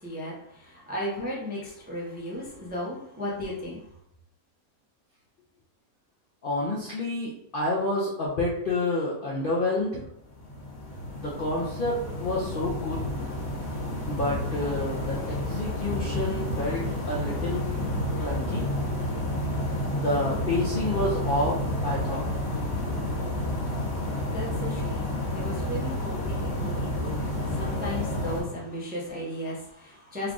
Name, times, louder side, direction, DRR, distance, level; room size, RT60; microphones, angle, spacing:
voice 1, 0.0-3.8 24.3-27.2 27.5-30.3, left 1 dB, 15° right, -4 dB, 0.3 m, -35 dB
voice 2, 6.4-10.1 11.2-13.0 14.1-17.6 18.2-18.7 19.9-21.6 21.8-22.2, left 2 dB, 60° left, -5 dB, 0.5 m, -29 dB
sound 1, 10.3-28.4, left 1 dB, 45° left, 1.1 m, -30 dB
3.2 x 2.4 x 3.7 m, 0.75 s
omnidirectional pair, 1.6 m